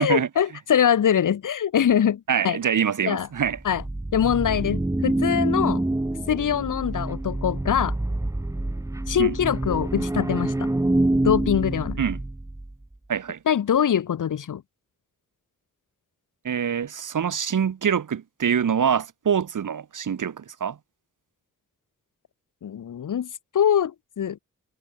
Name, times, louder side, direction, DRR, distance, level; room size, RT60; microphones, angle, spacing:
voice 1, 0.0-2.6 3.0-3.3 3.6-3.8 4.1-5.8 6.3-8.0 9.1-10.7 11.2-12.0 13.5-14.6 22.6-23.3 23.5-24.4, left 9 dB, 70° left, 1.2 m, -23 dB
voice 2, 2.3-3.6 9.2-9.3 12.0-12.2 13.1-13.4 16.4-20.8, right 7 dB, 70° right, 2.4 m, -25 dB
sound 1, 3.4-12.7, right 2 dB, 10° right, 1.1 m, -26 dB
wide cardioid pair, 170°, 33 cm